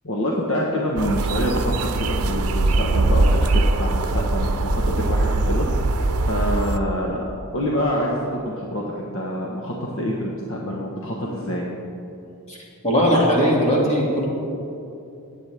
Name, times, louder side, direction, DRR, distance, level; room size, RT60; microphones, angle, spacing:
voice 1, 0.0-7.2 7.5-11.7, equal, 60° left, -3 dB, 1.1 m, -26 dB
sound 1, 1.0-6.8, right 2 dB, 90° right, 0.6 m, -21 dB
voice 2, 12.8-14.3, equal, 30° left, -4 dB, 2.4 m, -19 dB
17.5 x 8.2 x 3.4 m, 2.7 s
head